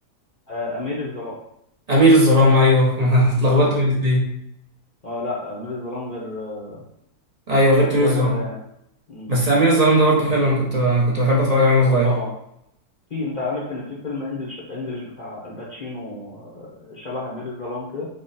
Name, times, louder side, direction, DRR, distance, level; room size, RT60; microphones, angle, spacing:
voice 1, 0.5-1.4 3.4-3.7 5.0-6.8 7.8-8.6 9.1-9.3 11.9-12.3 13.1-18.1, left 2 dB, 75° left, -5 dB, 0.4 m, -31 dB
voice 2, 1.9-4.3 7.5-8.4 9.3-12.1, equal, 55° right, -5 dB, 0.4 m, -17 dB
3.6 x 2.0 x 3.9 m, 0.77 s
omnidirectional pair, 1.7 m